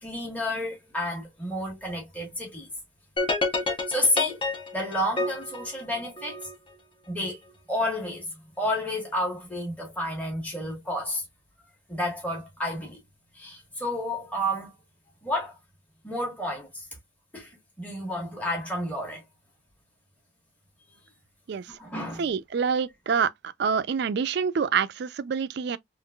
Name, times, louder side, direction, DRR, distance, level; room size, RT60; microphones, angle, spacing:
voice 1, 0.0-2.7 3.9-4.4 4.7-6.4 7.1-7.4 7.7-11.2 11.9-13.0 13.3-14.7 15.2-15.5 16.0-16.9 17.3-19.2 21.8-22.3, left 1 dB, 10° left, 1.2 m, -30 dB
sound 1, 3.2-6.5, left 3 dB, 25° left, 0.7 m, -28 dB
voice 2, 22.2-23.3 23.6-25.8, right 6 dB, 60° right, 0.3 m, -26 dB
3.7 x 2.5 x 2.2 m
head